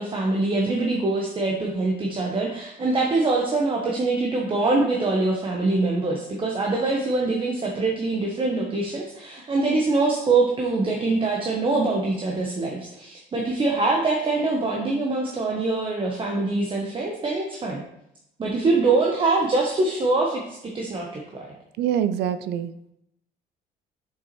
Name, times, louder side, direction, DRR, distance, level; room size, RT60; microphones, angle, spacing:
voice 1, 0.0-17.8 18.4-21.5, right 3 dB, 30° right, -1 dB, 0.9 m, -24 dB
voice 2, 21.8-22.9, right 9 dB, 75° right, 13 dB, 0.4 m, -25 dB
6.8 x 5.4 x 3.1 m, 0.80 s
cardioid pair, 110°, 17 cm